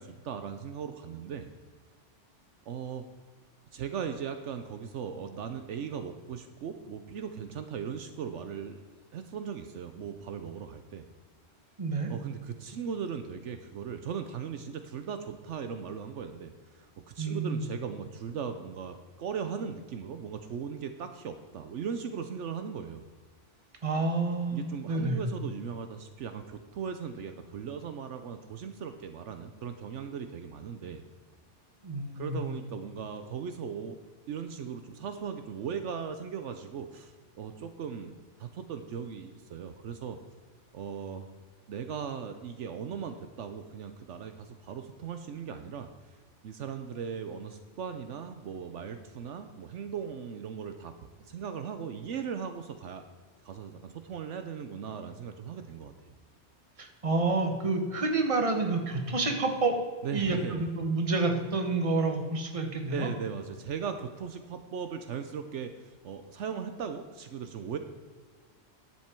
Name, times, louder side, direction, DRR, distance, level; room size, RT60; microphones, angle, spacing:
voice 1, 0.0-1.5 2.7-3.0 3.7-8.8 9.1-11.1 12.1-16.9 17.1-23.0 24.5-31.0 32.1-34.0 34.3-38.1 38.4-40.2 40.7-41.3 41.7-46.1 46.4-50.9 51.2-53.0 53.4-55.9 60.0-60.7 62.9-67.8, right 7 dB, 75° right, 8 dB, 1.0 m, -38 dB
voice 2, 11.8-12.1 17.2-17.7 23.8-25.2 31.8-32.4 56.8-59.7 60.1-63.1, right 3 dB, 30° right, 4 dB, 1.3 m, -29 dB
10.5 x 7.5 x 4.5 m, 1.5 s
omnidirectional pair, 1.3 m